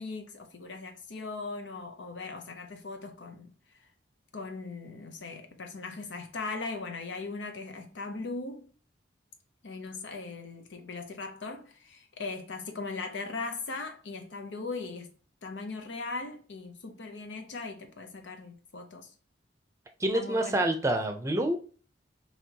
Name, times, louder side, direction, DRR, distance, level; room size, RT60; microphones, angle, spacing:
voice 1, 0.0-3.5 4.3-8.7 9.6-15.1 15.4-19.1 20.1-20.6, left 3 dB, 75° left, 0.7 m, -39 dB
voice 2, 20.0-21.6, right 1 dB, 15° right, 0.6 m, -27 dB
5.5 x 3.0 x 2.8 m
head